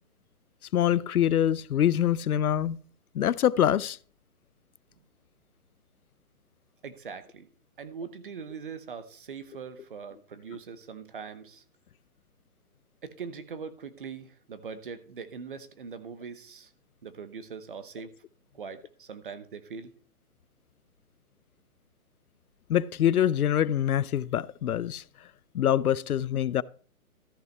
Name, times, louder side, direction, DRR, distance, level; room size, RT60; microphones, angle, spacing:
voice 1, 0.7-2.8 3.1-4.0 22.7-25.0 25.5-26.6, left 10 dB, 80° left, 0.6 m, -25 dB
voice 2, 6.8-7.5 7.8-11.6 13.0-16.7 17.0-18.1 18.5-19.9, right 6 dB, 35° right, 0.9 m, -41 dB
13.5 x 5.5 x 4.5 m
hypercardioid pair, 165°, 44 cm